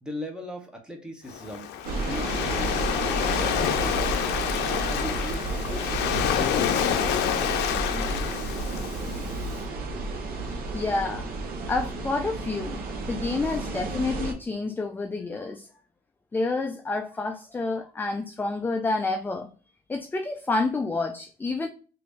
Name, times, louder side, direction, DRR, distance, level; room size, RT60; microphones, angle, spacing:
voice 1, 0.0-4.2 4.8-7.0 7.6-8.3, left 1 dB, 5° right, 1.0 m, -40 dB
Waves surf, 1.3-9.5, left 9 dB, 80° left, 0.5 m, -28 dB
sound 1, 1.8-14.3, right 2 dB, 60° right, 0.9 m, -32 dB
voice 2, 10.7-11.3 11.7-15.7 16.3-19.5 19.9-21.7, left 3 dB, 10° left, 0.3 m, -29 dB
2.9 x 2.6 x 3.4 m
cardioid pair, 110°, 17 cm